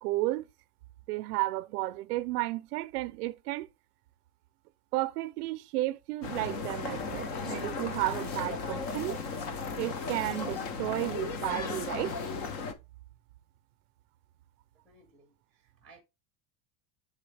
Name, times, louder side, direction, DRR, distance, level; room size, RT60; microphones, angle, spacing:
voice 1, 0.0-0.5 1.1-3.7 4.9-9.2 9.8-12.1, right 18 dB, 80° right, 0.6 m, -33 dB
sound 1, 6.2-12.7, left 4 dB, 30° left, 0.4 m, -36 dB
sound 2, 6.6-11.0, left 2 dB, 70° left, 3.4 m, -50 dB
voice 2, 14.8-16.0, right 3 dB, ahead, 0.7 m, -59 dB
7.7 x 4.0 x 3.2 m
supercardioid pair, 180°, 46 cm